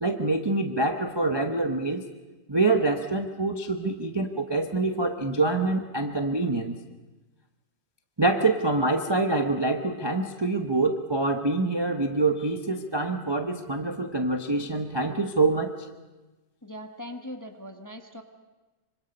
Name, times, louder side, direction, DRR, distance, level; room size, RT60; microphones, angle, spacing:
voice 1, 0.0-2.0 2.5-6.8 8.2-15.7, right 2 dB, 25° right, 5 dB, 0.6 m, -25 dB
voice 2, 16.6-18.2, equal, 15° left, 5 dB, 0.9 m, -40 dB
25.5 x 25.0 x 5.4 m, 1.2 s
omnidirectional pair, 2.0 m